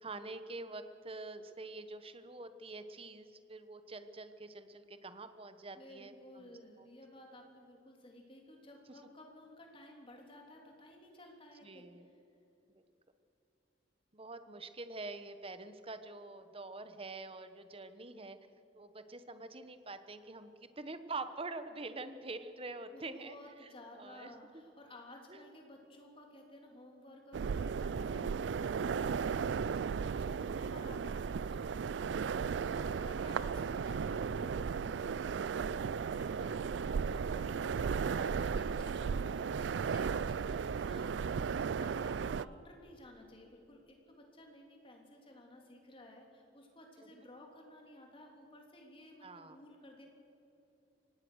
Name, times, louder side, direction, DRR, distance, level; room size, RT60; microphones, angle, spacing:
voice 1, 0.0-6.9 11.6-12.1 14.1-18.4 18.7-20.5 20.8-23.4 23.6-24.3 25.3-25.4 32.8-33.0 33.2-33.3 47.0-47.1 49.2-49.6, right 3 dB, 30° right, 10 dB, 1.2 m, -46 dB
voice 2, 5.7-11.9 22.9-50.1, left 1 dB, 30° left, 2 dB, 3.4 m, -55 dB
sound 1, 27.3-42.4, right 6 dB, 80° right, 0.4 m, -35 dB
24.5 x 18.5 x 6.4 m, 2.9 s
head